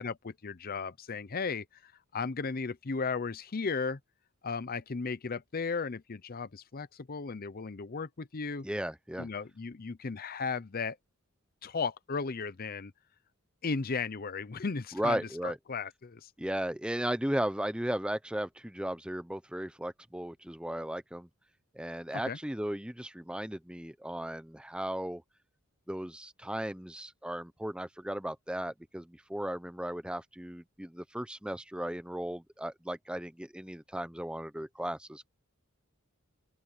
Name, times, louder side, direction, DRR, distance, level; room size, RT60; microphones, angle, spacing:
voice 1, 0.0-4.0 4.4-8.7 9.2-11.0 11.6-12.9 13.6-16.3 22.3-22.4, left 4 dB, 45° left, 0.7 m, -35 dB
voice 2, 8.6-9.3 14.9-15.6 16.4-21.3 21.7-25.2 25.9-35.3, right 1 dB, 5° right, 0.8 m, -36 dB
open air
head